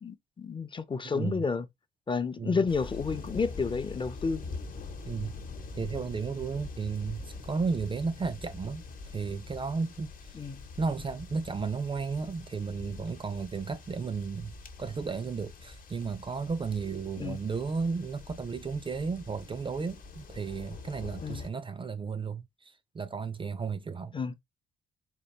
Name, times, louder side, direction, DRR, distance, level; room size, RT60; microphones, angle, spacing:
voice 1, 0.0-1.7 2.1-4.4 10.3-10.6 17.2-17.4 21.2-21.4 24.1-24.3, left 5 dB, 25° left, 0.5 m, -31 dB
voice 2, 1.1-1.5 2.4-2.6 5.1-5.4 5.8-8.8 9.1-10.3 10.8-24.2, right 5 dB, 25° right, 0.4 m, -34 dB
sound 1, 2.7-21.5, left 4 dB, 45° left, 0.9 m, -44 dB
4.0 x 2.5 x 3.2 m
cardioid pair, 90°, 20 cm